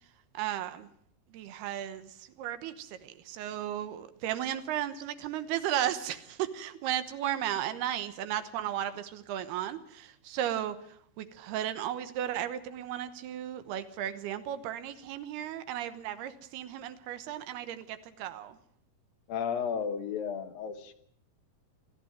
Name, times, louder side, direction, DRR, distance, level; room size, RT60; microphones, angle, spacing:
voice 1, 0.3-0.9 1.3-2.1 2.4-10.8 11.2-18.6, right 11 dB, 85° right, 12 dB, 3.1 m, -35 dB
voice 2, 19.3-20.9, left 7 dB, 70° left, 8 dB, 2.9 m, -33 dB
20.0 x 14.5 x 9.0 m, 0.68 s
omnidirectional pair, 4.5 m